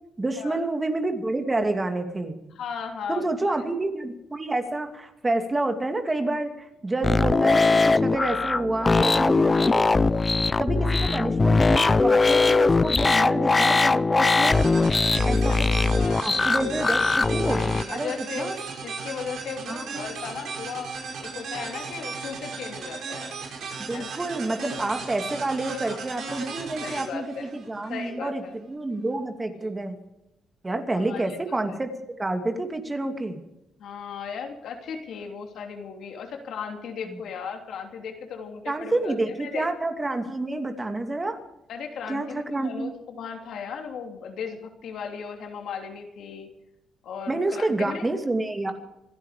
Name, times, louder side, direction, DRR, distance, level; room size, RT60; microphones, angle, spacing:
voice 1, 0.2-2.3 3.1-9.9 10.6-14.6 15.3-15.7 16.0-18.6 19.7-20.1 23.8-30.0 30.6-31.9 32.2-33.4 37.1-37.2 38.7-41.4 42.1-42.9 47.3-48.7, right 2 dB, 20° right, 5 dB, 2.6 m, -28 dB
voice 2, 2.6-3.5 15.5-16.6 17.0-17.3 17.7-18.5 18.8-20.9 21.2-23.4 23.9-24.1 24.6-24.7 25.7-26.5 26.8-27.5 27.9-28.5 29.5-29.7 30.9-31.2 33.8-39.1 39.4-39.7 41.7-46.5 47.0-48.0, left 6 dB, 70° left, 4 dB, 3.0 m, -36 dB
sound 1, 7.0-17.8, left 3 dB, 25° left, 0.5 m, -21 dB
sound 2, 14.4-28.1, right 5 dB, 70° right, 6.3 m, -36 dB
27.0 x 10.5 x 5.0 m, 0.89 s
cardioid pair, 90°, 0 cm